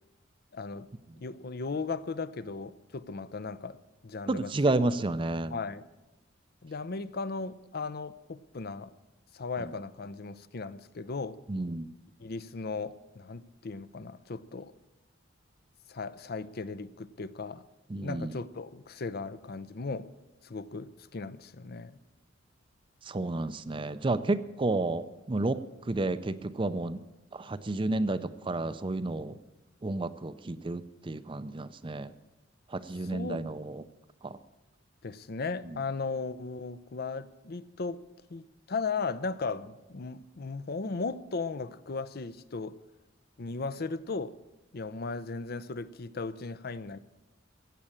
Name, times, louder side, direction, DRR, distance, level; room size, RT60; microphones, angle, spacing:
voice 1, 0.5-0.9 1.2-3.8 4.0-4.5 4.8-4.9 5.5-5.8 6.6-8.9 9.3-11.4 12.2-14.7 15.9-17.6 18.0-20.1 20.4-22.0 33.0-33.4 35.0-38.0 38.3-42.8 43.4-44.4 44.7-47.0, left 4 dB, 50° left, 14 dB, 0.6 m, -36 dB
voice 2, 4.3-5.5 11.5-11.9 17.9-18.3 23.1-25.6 25.9-27.0 27.3-29.4 29.8-32.1 32.7-33.8 34.2-34.4, right 2 dB, 25° right, 13 dB, 0.5 m, -31 dB
15.0 x 8.5 x 8.7 m, 1.1 s
head